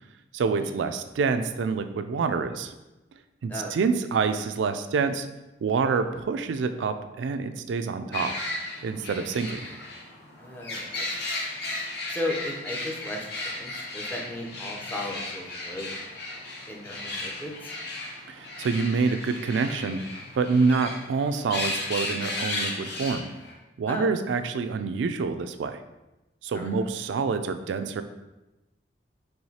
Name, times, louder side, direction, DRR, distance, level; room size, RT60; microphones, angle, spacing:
voice 1, 0.3-2.7 3.4-5.3 5.6-8.3 8.8-9.7 18.3-20.0 20.4-23.3 23.8-25.8 26.4-28.0, right 5 dB, 90° right, 9 dB, 0.3 m, -27 dB
sound 1, 8.1-23.5, left 2 dB, 65° left, 0.8 m, -35 dB
voice 2, 10.4-11.1 12.1-15.9 16.7-17.7 23.9-24.1 26.5-26.7, left 1 dB, 10° left, -1 dB, 0.6 m, -35 dB
4.7 x 3.2 x 2.7 m, 1.0 s
head